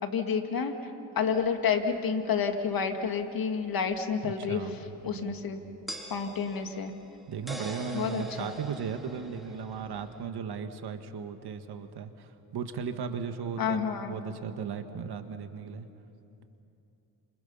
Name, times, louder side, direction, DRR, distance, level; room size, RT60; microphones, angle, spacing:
voice 1, 0.0-0.7 1.2-4.6 5.0-5.6 6.1-6.9 7.9-8.5 13.6-14.1, left 6 dB, 55° left, 5 dB, 2.3 m, -29 dB
sound 1, 1.4-1.5 3.9-4.0 5.9-10.3, equal, ahead, 3.5 m, -43 dB
voice 2, 4.2-5.4 7.3-15.9, right 6 dB, 65° right, 7 dB, 1.8 m, -36 dB
29.5 x 27.0 x 5.7 m, 2.8 s
cardioid pair, 90°, 42 cm